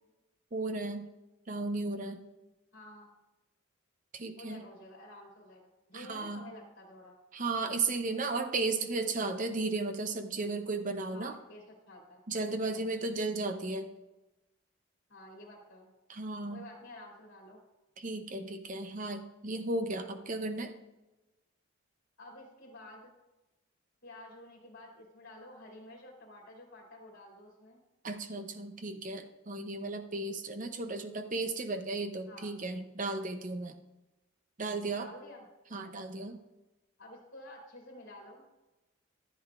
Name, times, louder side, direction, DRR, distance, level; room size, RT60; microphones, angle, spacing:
voice 1, 0.5-1.1 1.5-2.2 4.1-4.7 5.9-6.4 7.3-11.4 12.3-13.9 16.1-16.6 18.0-20.7 28.0-33.8 34.6-35.1 35.7-36.4, right 3 dB, 40° right, 7 dB, 0.7 m, -35 dB
voice 2, 2.7-3.1 4.4-7.1 11.1-12.2 12.6-12.8 15.1-15.9 16.5-17.6 22.2-23.1 24.0-27.8 32.3-32.5 34.9-35.4 37.0-38.4, left 1 dB, 60° left, -4 dB, 2.8 m, -51 dB
13.5 x 8.6 x 2.5 m, 1.0 s
head